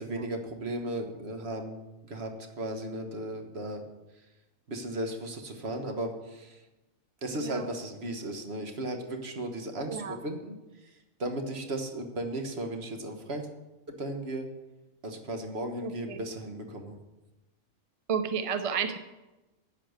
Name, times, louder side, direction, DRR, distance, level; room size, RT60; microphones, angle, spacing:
voice 1, 0.0-3.8 4.7-6.6 7.2-13.5 13.9-14.5 15.0-17.0, right 1 dB, 55° right, 4 dB, 1.6 m, -36 dB
voice 2, 7.3-7.6 9.9-10.2 15.8-16.2 18.1-19.0, right 6 dB, 35° right, 9 dB, 0.6 m, -32 dB
10.5 x 8.5 x 6.5 m, 1.1 s
omnidirectional pair, 1.3 m